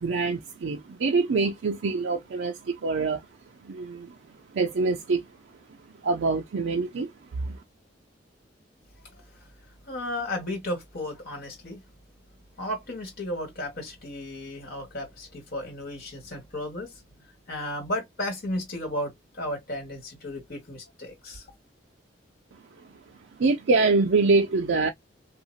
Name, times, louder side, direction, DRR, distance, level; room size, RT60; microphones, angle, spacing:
voice 1, 0.0-3.2 3.6-4.1 4.5-5.2 6.0-7.1 7.4-7.6 23.4-24.9, right 3 dB, 70° right, 0.4 m, -25 dB
voice 2, 9.0-9.5 9.8-11.8 12.6-16.9 17.5-21.4, left 1 dB, 55° left, 1.9 m, -34 dB
2.8 x 2.6 x 2.7 m
head